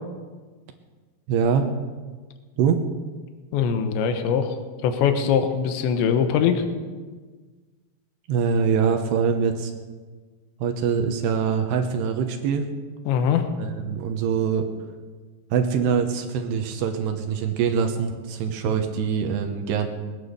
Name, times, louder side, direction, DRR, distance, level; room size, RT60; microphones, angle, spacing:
voice 1, 1.3-1.7 2.6-2.8 8.3-9.7 10.6-12.6 13.6-14.7 15.5-19.9, right 6 dB, 75° right, 5 dB, 2.9 m, -23 dB
voice 2, 3.5-6.7 13.1-13.5, left 7 dB, 80° left, 7 dB, 3.3 m, -22 dB
21.5 x 9.7 x 6.8 m, 1.4 s
omnidirectional pair, 5.3 m